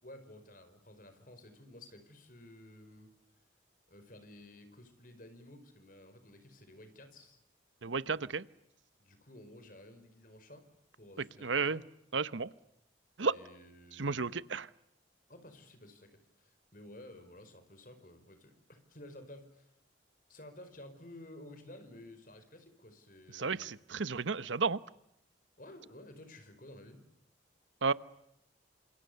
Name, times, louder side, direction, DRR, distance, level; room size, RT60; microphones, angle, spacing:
voice 1, 0.0-3.1 3.9-7.4 9.0-10.6 10.9-11.8 13.2-14.4 15.3-19.7 20.3-23.7 25.6-27.0, left 1 dB, 45° left, 9 dB, 5.1 m, -53 dB
voice 2, 7.8-8.4 11.4-11.8 12.1-12.5 13.2-13.3 14.0-14.7 23.3-24.8 27.8-27.9, right 4 dB, 90° right, 16 dB, 0.9 m, -32 dB
28.0 x 27.0 x 6.9 m, 0.80 s
head